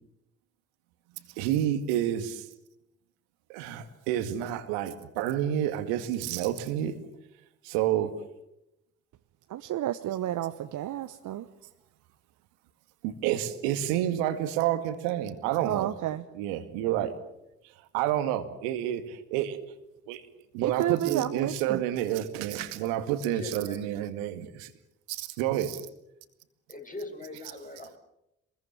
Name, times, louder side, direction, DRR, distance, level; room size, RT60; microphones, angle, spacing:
voice 1, 1.4-2.5 3.5-6.9 7.6-8.1 13.0-15.9 16.3-17.1 17.9-19.6 20.1-20.2 20.5-24.7 25.1-25.9, right 11 dB, 70° right, 10 dB, 2.1 m, -29 dB
voice 2, 9.5-11.5 15.6-16.2 20.6-21.8, right 12 dB, 55° right, 10 dB, 1.1 m, -31 dB
voice 3, 22.5-23.9 26.7-28.0, left 2 dB, 20° left, 3 dB, 7.1 m, -42 dB
27.0 x 21.5 x 7.4 m, 0.85 s
figure-of-eight pair, 45°, 37 cm